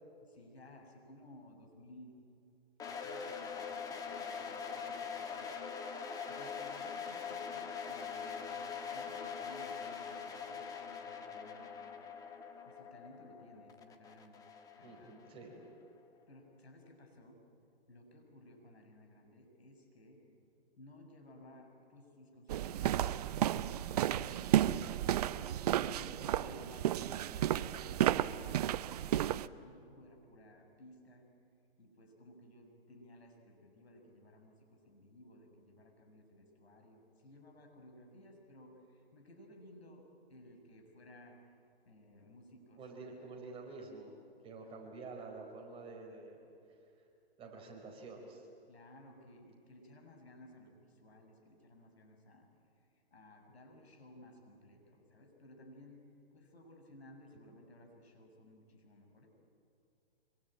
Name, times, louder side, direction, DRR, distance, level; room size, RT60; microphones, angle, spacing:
voice 1, 0.2-2.2 2.8-5.6 6.3-12.1 12.6-14.4 14.8-15.3 16.3-17.4 17.9-20.2 20.8-25.3 25.8-31.3 31.8-41.5 41.8-43.2 48.7-56.0 56.3-59.3, left 1 dB, 80° left, 3 dB, 6.8 m, -58 dB
sound 1, 2.8-15.7, left 6 dB, 10° left, 1.5 m, -43 dB
voice 2, 14.8-15.6 25.8-26.4 42.8-44.1 44.4-46.4 47.4-48.5, right 3 dB, 20° right, 0 dB, 4.6 m, -49 dB
sound 2, 22.5-29.5, right 12 dB, 40° right, 0.6 m, -32 dB
26.0 x 23.5 x 8.9 m, 2.5 s
hypercardioid pair, 140°, 31 cm